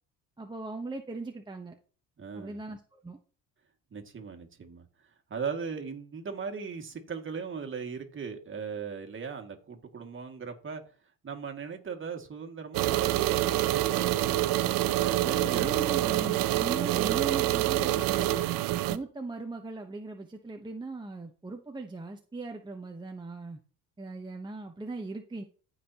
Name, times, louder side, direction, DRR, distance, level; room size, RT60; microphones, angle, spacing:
voice 1, 0.4-1.8 2.3-3.2 15.2-18.6 18.9-23.6 24.0-25.4, right 3 dB, 15° right, 1.1 m, -39 dB
voice 2, 2.2-2.6 3.9-4.9 5.3-10.8 11.2-14.5 15.0-15.7, right 6 dB, 35° right, 2.2 m, -38 dB
sound 1, 12.7-19.0, right 15 dB, 75° right, 0.8 m, -26 dB
15.0 x 5.7 x 3.0 m
supercardioid pair, 85°, 34 cm